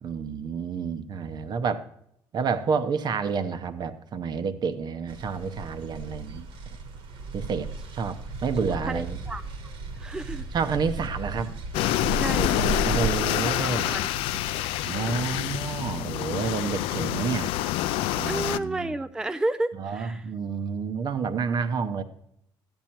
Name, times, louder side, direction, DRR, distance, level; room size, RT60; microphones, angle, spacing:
voice 1, 0.0-1.9 2.3-6.5 7.3-8.2 8.4-9.2 10.5-11.6 12.8-13.9 14.9-17.5 18.1-18.9 19.8-22.0, right 5 dB, 50° right, 11 dB, 0.9 m, -29 dB
sound 1, 5.1-14.5, right 3 dB, 70° right, 1.5 m, -35 dB
voice 2, 8.6-9.4 10.0-10.5 12.2-12.9 13.4-14.7 15.0-15.1 18.3-20.3, right 2 dB, 5° right, 10 dB, 0.4 m, -32 dB
sound 2, 11.7-18.6, left 14 dB, 85° left, 0.4 m, -27 dB
13.5 x 8.8 x 4.5 m, 0.75 s
cardioid pair, 100°, 9 cm